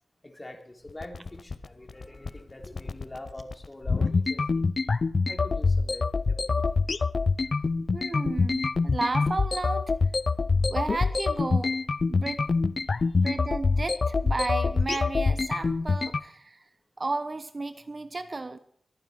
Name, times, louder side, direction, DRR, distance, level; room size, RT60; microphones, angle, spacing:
voice 1, 0.2-4.6 5.3-6.6 13.1-13.2, left 1 dB, 25° left, 3 dB, 3.1 m, -44 dB
sound 1, 0.9-16.2, left 4 dB, 55° left, 0.6 m, -25 dB
voice 2, 7.9-9.9 10.7-11.8 12.1-12.5 13.1-16.6 17.0-18.6, right 3 dB, 40° right, 11 dB, 0.9 m, -33 dB
22.5 x 9.3 x 4.7 m, 0.63 s
wide cardioid pair, 85°, 0 cm